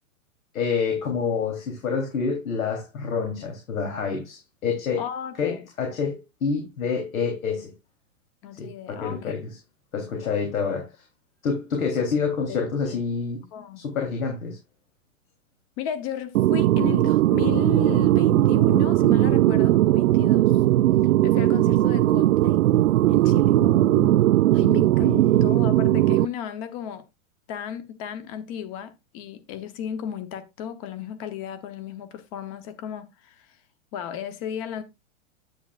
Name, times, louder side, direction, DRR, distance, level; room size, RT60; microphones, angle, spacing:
voice 1, 0.5-5.0 5.4-7.7 8.6-9.6 9.9-10.9 11.4-13.4 13.8-14.6 23.6-24.2 25.0-25.4, left 5 dB, 90° left, 3.5 m, -28 dB
voice 2, 4.9-5.6 8.4-9.3 12.5-12.7 13.5-13.8 15.8-20.5 21.2-22.6 23.1-23.6 24.5-27.0 27.5-33.5 33.9-34.8, left 9 dB, 25° left, 0.9 m, -34 dB
sound 1, 16.3-26.2, right 15 dB, 75° right, 0.5 m, -19 dB
9.8 x 8.7 x 2.4 m
supercardioid pair, 170°, 40 cm